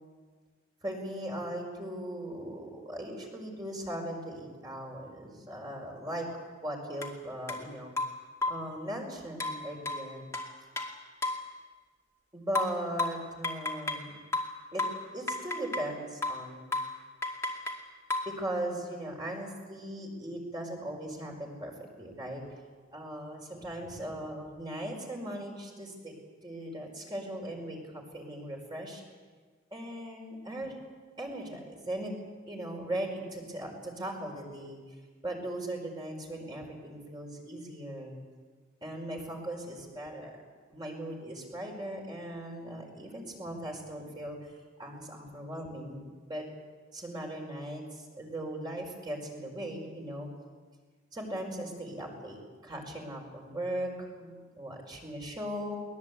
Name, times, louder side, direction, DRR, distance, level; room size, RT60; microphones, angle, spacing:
voice 1, 0.8-6.3 6.6-7.9 8.5-10.2 12.3-14.2 14.7-14.8 15.1-16.7 18.2-22.4 22.9-26.1 26.4-29.0 29.7-30.8 31.2-32.1 32.5-34.8 35.2-38.1 38.8-40.4 40.7-44.5 44.8-46.4 46.9-50.3 51.1-52.4 52.6-55.8, right 1 dB, 20° right, 1 dB, 5.0 m, -38 dB
sound 1, 7.0-7.1 7.5-7.6 8.0-8.7 9.4-11.5 12.6-14.1 14.3-15.9 16.2-16.5 16.7-17.0 17.2-18.4, left 2 dB, 15° left, 2.4 m, -33 dB
23.0 x 20.0 x 8.4 m, 1.5 s
head